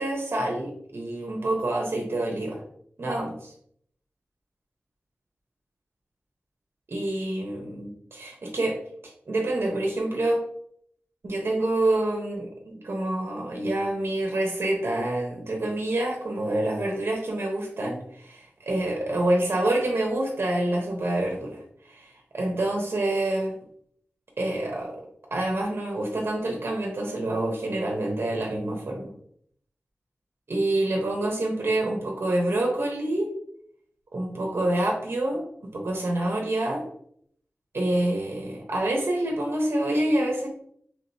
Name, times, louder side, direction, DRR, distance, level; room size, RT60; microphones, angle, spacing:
voice 1, 0.0-2.6 3.0-3.5 6.9-8.8 9.3-10.4 11.2-21.6 21.9-23.5 24.4-24.9 25.3-29.1 30.5-33.3 34.1-36.8 37.7-40.5, right 1 dB, 65° right, 0 dB, 1.1 m, -27 dB
5.1 x 3.4 x 2.8 m, 0.65 s
wide cardioid pair, 70°, 4 cm